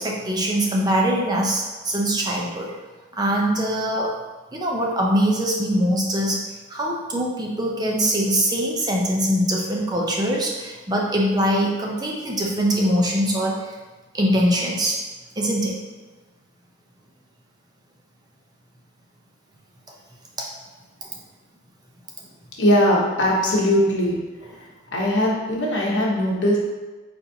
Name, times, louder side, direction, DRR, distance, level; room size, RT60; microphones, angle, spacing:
voice 1, 0.0-2.7 3.1-4.1 4.5-6.4 6.7-13.8 14.1-15.0 15.4-15.8 20.4-20.5 21.0-21.1, equal, 20° right, -1 dB, 0.5 m, -22 dB
voice 2, 22.6-24.2 24.9-26.6, equal, 70° left, -4 dB, 1.0 m, -20 dB
4.2 x 4.0 x 2.7 m, 1.3 s
head